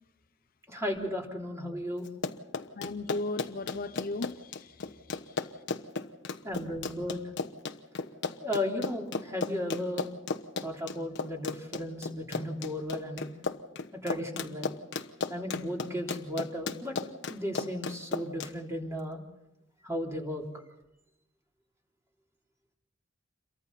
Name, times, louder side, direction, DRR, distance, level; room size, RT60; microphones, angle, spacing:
voice 1, 0.7-2.1 6.4-7.2 8.4-10.1 10.6-13.2 13.9-14.7 15.3-17.0 17.3-19.2 19.8-20.4, left 1 dB, 15° right, 0 dB, 3.5 m, -35 dB
Run, 2.1-18.5, left 4 dB, 60° left, 1.1 m, -35 dB
voice 2, 2.8-4.8 5.3-5.5, left 2 dB, 45° left, 9 dB, 0.7 m, -36 dB
28.5 x 23.0 x 4.2 m, 0.87 s
head